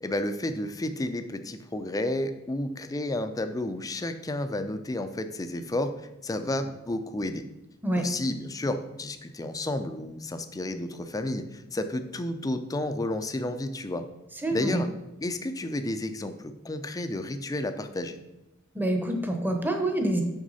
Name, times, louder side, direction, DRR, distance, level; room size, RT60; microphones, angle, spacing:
voice 1, 0.0-5.9 6.2-7.4 8.0-14.1 14.5-14.9 15.2-18.2, left 1 dB, 15° left, 9 dB, 0.4 m, -31 dB
voice 2, 14.4-14.8 18.7-20.2, right 1 dB, 10° right, 3 dB, 0.8 m, -26 dB
6.2 x 5.8 x 4.0 m, 0.95 s
head